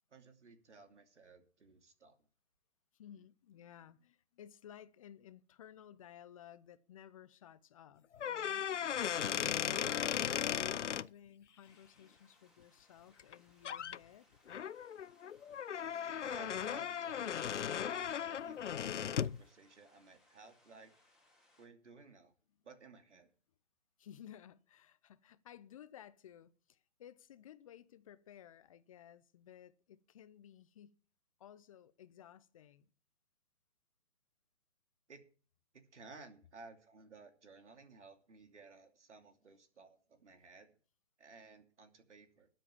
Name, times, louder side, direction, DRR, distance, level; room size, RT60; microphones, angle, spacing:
voice 1, 0.1-2.3 16.2-20.9 21.6-22.3 22.6-23.3 35.1-35.2 35.9-40.7 41.2-42.5, right 4 dB, 80° right, 2.9 m, -57 dB
voice 2, 2.9-8.7 9.3-14.3 24.0-31.0 31.4-32.9, left 10 dB, 30° left, 0.6 m, -56 dB
sound 1, 8.1-11.1 13.2-13.3 13.6-14.0 14.5-19.4, left 8 dB, 90° left, 0.6 m, -37 dB
sound 2, 11.6-21.7, left 2 dB, ahead, 3.6 m, -71 dB
13.0 x 7.7 x 7.1 m
hypercardioid pair, 145°, 35 cm